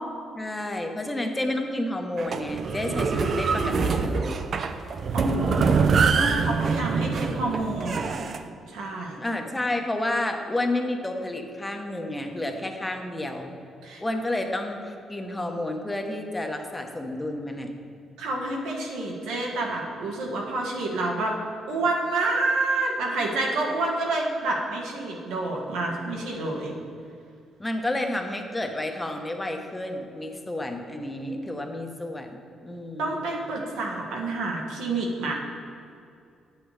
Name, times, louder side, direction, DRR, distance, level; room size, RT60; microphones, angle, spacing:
voice 1, 0.3-4.4 9.2-13.5 14.0-17.7 27.6-33.3, left 1 dB, 15° left, 4 dB, 0.8 m, -30 dB
sound 1, 2.2-8.4, right 5 dB, 50° right, 0.5 m, -25 dB
voice 2, 5.1-8.1 8.7-9.2 13.8-14.0 18.2-21.4 21.7-26.7 33.0-35.3, right 2 dB, 90° right, -1 dB, 1.4 m, -28 dB
8.5 x 8.1 x 3.2 m, 2.4 s
cardioid pair, 90°, 0 cm